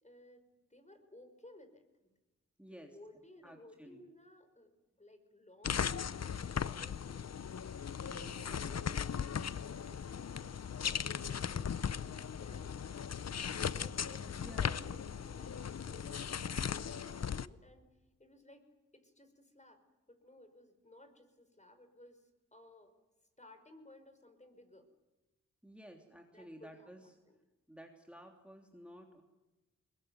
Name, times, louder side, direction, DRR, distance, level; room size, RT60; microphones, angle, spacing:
voice 1, 0.0-2.1 2.7-4.7 5.0-7.4 9.6-12.7 13.6-17.9 18.2-18.7 18.9-19.8 20.1-22.9 23.4-24.9 26.3-27.4, left 1 dB, 20° left, 8 dB, 5.4 m, -59 dB
voice 2, 2.6-3.0 3.4-4.0 8.1-8.4 14.2-14.9 25.6-27.1 27.7-29.2, equal, 5° right, 2 dB, 3.2 m, -53 dB
sound 1, 5.6-17.5, left 7 dB, 55° left, 0.8 m, -38 dB
22.0 x 21.0 x 9.4 m, 1.1 s
cardioid pair, 45°, 32 cm